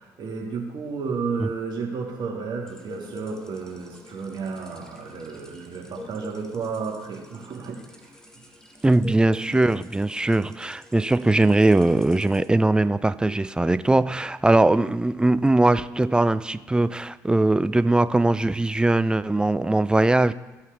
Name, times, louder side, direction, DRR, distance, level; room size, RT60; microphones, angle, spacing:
voice 1, 0.0-7.8, right 5 dB, 50° right, 2.1 m, -32 dB
sound 1, 2.7-13.2, left 2 dB, 5° left, 1.3 m, -46 dB
voice 2, 8.8-20.3, right 2 dB, 10° right, 0.4 m, -20 dB
14.5 x 5.5 x 3.5 m
hypercardioid pair, 55°, 9 cm